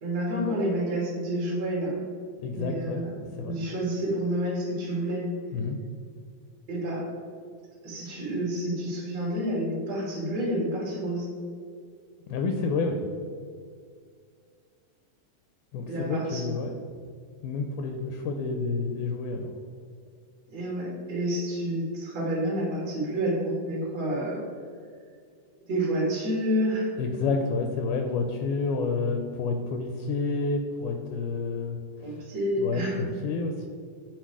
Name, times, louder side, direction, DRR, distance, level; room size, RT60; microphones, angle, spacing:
voice 1, 0.0-2.0 2.5-3.1 3.4-5.2 6.7-7.0 7.8-11.3 15.9-16.5 20.5-24.4 25.7-27.0 32.0-33.0, right 1 dB, 40° right, -5 dB, 2.5 m, -29 dB
voice 2, 2.4-3.0 3.4-3.6 5.5-5.8 12.3-13.1 15.7-16.7 17.4-19.5 27.0-32.2 32.6-33.7, left 4 dB, 80° left, 4 dB, 2.0 m, -29 dB
9.0 x 4.1 x 4.7 m, 2.1 s
omnidirectional pair, 3.7 m